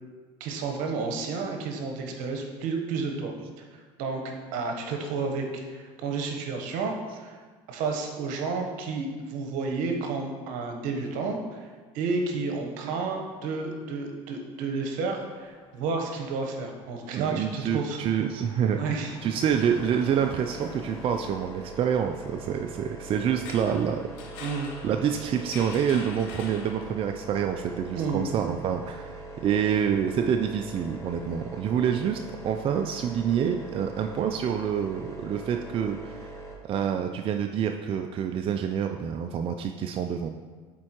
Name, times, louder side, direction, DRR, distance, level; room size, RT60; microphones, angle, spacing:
voice 1, 0.4-7.4 7.7-11.7 11.9-18.0 18.8-19.2 24.4-24.7 27.9-28.3, right 4 dB, 70° right, 3 dB, 0.9 m, -31 dB
sound 1, 15.3-22.6, left 3 dB, 40° left, 0.9 m, -47 dB
voice 2, 17.1-24.1 24.8-36.3 36.6-40.3, right 8 dB, 40° right, 5 dB, 0.4 m, -27 dB
sound 2, 19.5-36.6, right 2 dB, 20° left, 1.3 m, -42 dB
sound 3, 23.3-27.2, left 4 dB, 80° left, 0.8 m, -44 dB
7.5 x 4.4 x 2.9 m, 1.5 s
supercardioid pair, 90°, 14 cm